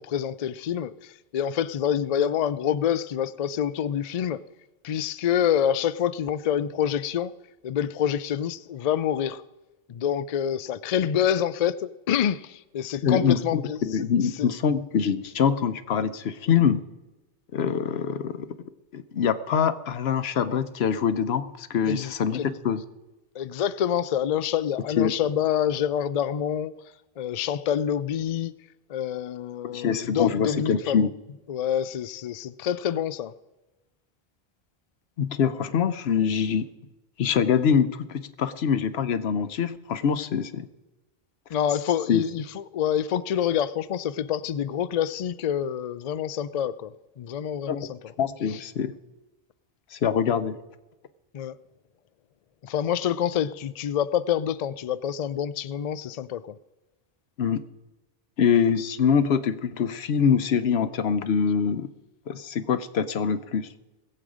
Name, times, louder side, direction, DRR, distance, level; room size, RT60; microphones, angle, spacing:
voice 1, 0.0-4.4 4.8-7.3 7.6-9.4 9.9-13.8 14.4-14.5 21.9-22.6 23.3-26.7 27.2-28.5 28.9-31.1 31.5-33.3 41.5-48.0 48.5-48.6 51.3-51.6 52.6-56.4, left 9 dB, 50° left, 0.5 m, -27 dB
voice 2, 13.0-16.8 17.5-18.5 18.9-22.8 25.0-25.1 29.7-31.1 35.2-36.7 37.2-40.7 42.1-42.2 47.7-47.8 48.2-48.9 49.9-50.6 57.4-57.6 58.4-61.9 62.3-63.7, left 7 dB, 90° left, 1.0 m, -24 dB
20.0 x 7.9 x 4.9 m
omnidirectional pair, 1.0 m